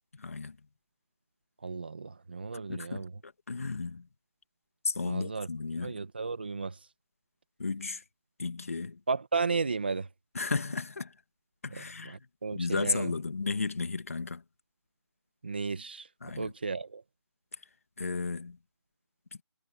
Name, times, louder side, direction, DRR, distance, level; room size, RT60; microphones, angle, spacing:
voice 1, 0.1-0.6 2.7-4.1 4.8-5.9 7.6-8.0 8.4-9.0 10.3-11.1 11.6-12.2 12.5-14.4 16.2-16.5 18.0-18.6, left 4 dB, 30° left, 2.1 m, -34 dB
voice 2, 1.6-3.1 5.1-5.5 5.8-6.8 9.1-10.1 11.7-13.1 15.4-16.1 16.4-17.0, right 4 dB, 20° right, 1.5 m, -34 dB
figure-of-eight pair, 180°, 14 cm